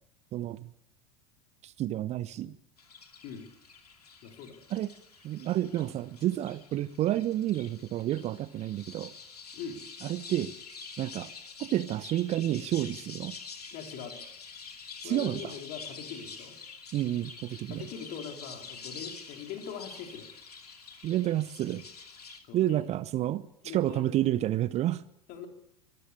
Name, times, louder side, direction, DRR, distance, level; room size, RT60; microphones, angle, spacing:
voice 1, 0.3-0.7 1.6-2.5 4.7-4.9 5.2-9.1 10.0-10.5 11.0-11.3 11.6-13.4 15.0-15.4 16.9-17.9 21.0-21.8 22.5-23.5 23.7-25.0, right 13 dB, 35° right, 18 dB, 0.8 m, -30 dB
sound 1, 2.8-22.4, left 5 dB, 80° left, 2.7 m, -47 dB
voice 2, 4.2-4.7 9.5-9.8 13.7-14.2 15.0-16.6 17.7-20.3 22.5-22.9 23.6-24.0 25.3-25.5, left 7 dB, 45° left, 3 dB, 4.2 m, -42 dB
24.5 x 14.5 x 8.6 m, 0.79 s
figure-of-eight pair, 80°, 20 cm